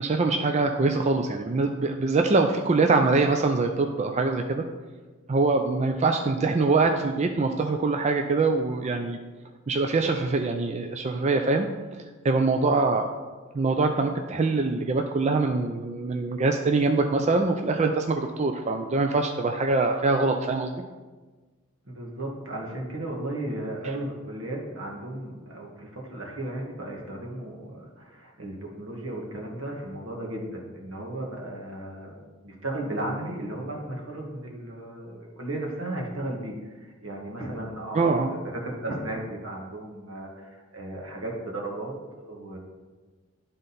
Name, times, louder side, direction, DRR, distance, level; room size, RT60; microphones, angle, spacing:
voice 1, 0.0-4.6 5.3-9.2 9.7-11.7 12.2-13.3 13.5-20.7 37.9-38.3, right 3 dB, 35° right, 4 dB, 0.4 m, -24 dB
voice 2, 21.9-42.6, right 1 dB, 75° right, -1 dB, 1.6 m, -35 dB
11.5 x 3.8 x 4.1 m, 1.3 s
head